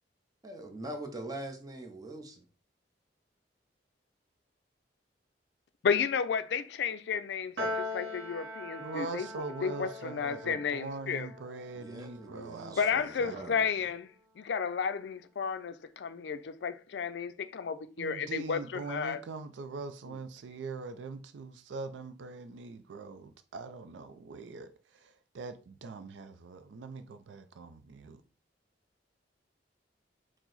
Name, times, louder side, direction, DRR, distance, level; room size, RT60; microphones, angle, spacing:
voice 1, 0.4-2.4 11.7-13.7, right 1 dB, 20° right, 0.6 m, -43 dB
voice 2, 5.8-9.3 9.6-11.3 12.8-14.1 14.4-19.2, left 6 dB, 70° left, 0.4 m, -32 dB
Piano, 7.6-14.1, left 1 dB, 70° right, 0.8 m, -42 dB
voice 3, 8.8-12.8 13.2-13.5 18.0-28.2, right 4 dB, 90° right, 0.4 m, -42 dB
4.6 x 2.0 x 3.9 m
head